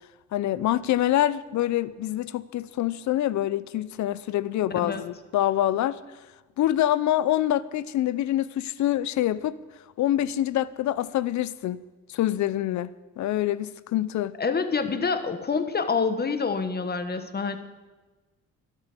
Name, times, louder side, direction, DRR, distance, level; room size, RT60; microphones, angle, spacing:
voice 1, 0.3-6.0 6.6-9.6 10.0-11.8 12.1-14.3, left 13 dB, 70° left, 0.6 m, -25 dB
voice 2, 14.4-17.6, left 5 dB, 30° left, 1.3 m, -27 dB
12.0 x 11.5 x 6.7 m
cardioid pair, 90°, 30 cm